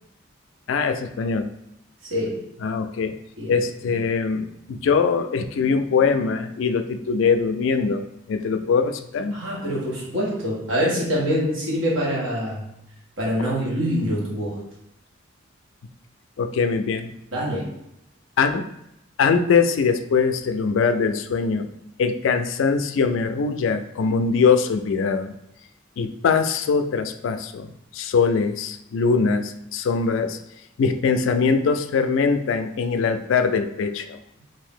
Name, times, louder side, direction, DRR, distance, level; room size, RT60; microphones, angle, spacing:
voice 1, 0.7-1.5 2.6-3.2 3.5-9.4 16.4-17.1 18.4-18.7 19.2-21.7 22.0-25.3 26.0-30.4 30.8-34.2, left 5 dB, 70° left, 9 dB, 0.3 m, -22 dB
voice 2, 2.1-2.5 3.4-3.5 9.3-12.7 13.2-14.6 17.3-17.7, equal, 70° right, -4 dB, 1.3 m, -25 dB
2.7 x 2.6 x 3.6 m, 0.80 s
head